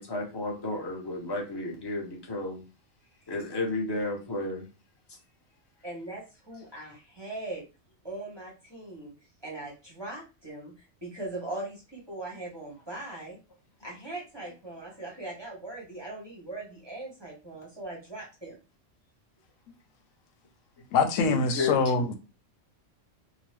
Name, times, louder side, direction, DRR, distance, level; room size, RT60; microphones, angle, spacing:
voice 1, 0.0-2.6 3.3-4.6 21.2-21.8, left 2 dB, 25° left, 0.6 m, -32 dB
voice 2, 5.8-7.6 8.0-9.1 9.4-13.4 13.8-18.6, right 2 dB, 25° right, 0.7 m, -40 dB
voice 3, 20.9-22.2, left 4 dB, 90° left, 0.9 m, -24 dB
2.9 x 2.0 x 3.1 m
omnidirectional pair, 1.3 m